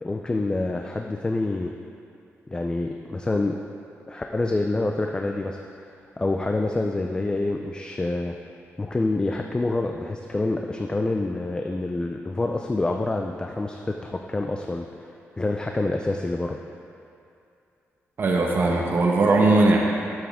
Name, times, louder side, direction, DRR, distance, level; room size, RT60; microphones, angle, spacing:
voice 1, 0.0-1.7 2.5-3.6 4.1-5.6 6.2-8.4 8.8-15.1 15.4-16.6, left 2 dB, 20° left, 3 dB, 0.4 m, -27 dB
voice 2, 18.2-19.8, right 2 dB, 45° right, -1 dB, 1.0 m, -19 dB
11.0 x 7.2 x 3.6 m, 2.6 s
cardioid pair, 110°, 5 cm